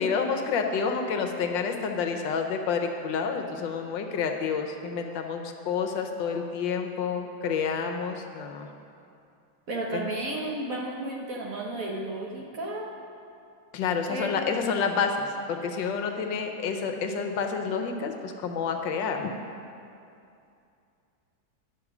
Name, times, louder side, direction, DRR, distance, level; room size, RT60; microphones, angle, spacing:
voice 1, 0.0-8.7 9.9-10.0 13.7-19.3, left 5 dB, 75° left, 5 dB, 1.4 m, -29 dB
voice 2, 9.7-12.9 14.1-14.4, right 1 dB, 55° right, -1 dB, 1.1 m, -33 dB
9.8 x 6.5 x 5.9 m, 2.6 s
omnidirectional pair, 2.1 m